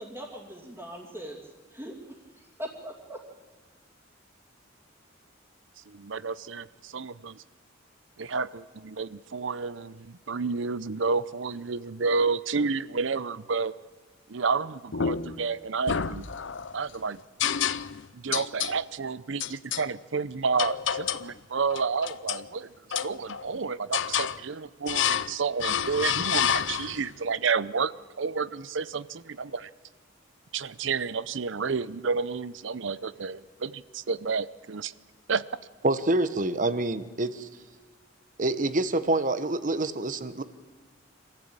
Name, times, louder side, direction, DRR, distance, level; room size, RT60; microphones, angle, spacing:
voice 1, 0.0-1.4 1.7-1.9 2.6-3.2, equal, 15° right, -5 dB, 2.8 m, -40 dB
voice 2, 5.9-7.4 8.2-13.7 14.3-16.3 16.7-17.2 18.1-22.7 23.0-29.7 30.5-34.9 35.3-35.4, right 5 dB, 70° right, 17 dB, 0.7 m, -30 dB
sound 1, 14.9-15.5 15.9-16.7 17.4-18.0 18.3-18.8 19.4-19.9 20.6-21.3 21.7-22.5 22.9-23.5 23.9-24.4 24.9-25.3 25.6-27.1, left 8 dB, 65° left, 0.7 m, -29 dB
voice 3, 35.8-37.5 38.4-40.4, right 2 dB, 40° right, 12 dB, 1.1 m, -26 dB
25.5 x 15.0 x 8.9 m, 1.4 s
head